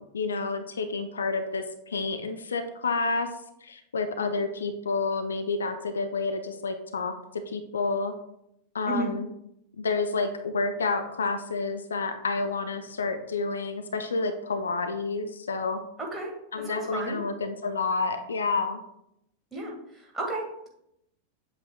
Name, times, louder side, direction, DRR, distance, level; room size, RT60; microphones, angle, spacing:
voice 1, 0.1-3.3 3.6-8.1 8.7-9.3 9.8-15.8 16.5-18.8, left 4 dB, 70° left, 8 dB, 0.5 m, -29 dB
voice 2, 16.0-17.2 19.5-19.7 20.1-20.7, right 2 dB, 5° right, -2 dB, 2.0 m, -33 dB
7.8 x 7.7 x 2.3 m, 0.79 s
figure-of-eight pair, 90°, 0 cm